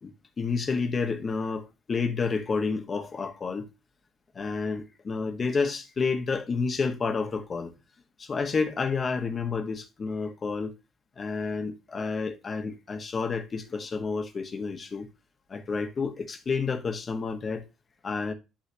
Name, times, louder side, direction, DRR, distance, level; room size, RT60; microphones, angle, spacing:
voice 1, 0.0-3.7 4.3-7.7 8.2-10.7 11.2-15.1 15.5-17.6 18.0-18.3, left 4 dB, 35° left, 1.4 m, -30 dB
11.5 x 4.0 x 2.9 m
figure-of-eight pair, 55°, 0 cm